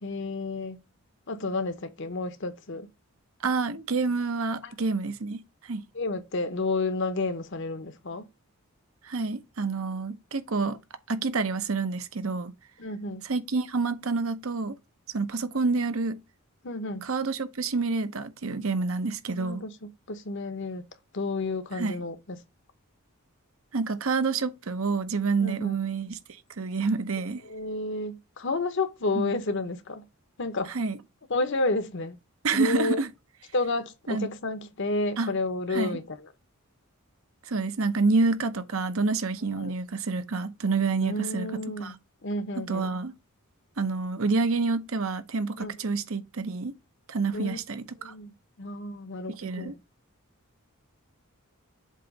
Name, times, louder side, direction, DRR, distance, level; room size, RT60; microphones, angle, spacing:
voice 1, 0.0-0.8 1.3-2.9 4.6-4.7 5.9-8.3 12.8-13.2 16.6-17.0 19.3-19.7 20.1-20.8 21.1-22.4 25.4-25.7 27.4-30.0 30.4-30.7 31.3-32.2 32.5-33.0 33.5-36.2 39.6-39.8 41.0-41.9 42.2-42.9 45.6-45.8 47.3-47.6 48.0-49.8, left 2 dB, 55° left, 0.9 m, -31 dB
voice 2, 3.4-5.8 9.0-10.8 11.1-12.5 13.2-14.8 15.1-16.2 17.0-19.6 21.7-21.9 23.7-26.2 26.6-27.4 29.2-29.3 30.7-31.0 32.4-33.1 34.1-34.3 35.2-35.3 35.7-36.0 37.5-41.9 42.6-43.1 43.8-46.7 47.1-48.1 49.4-49.7, right 4 dB, 65° right, 0.8 m, -28 dB
7.5 x 2.9 x 5.3 m
head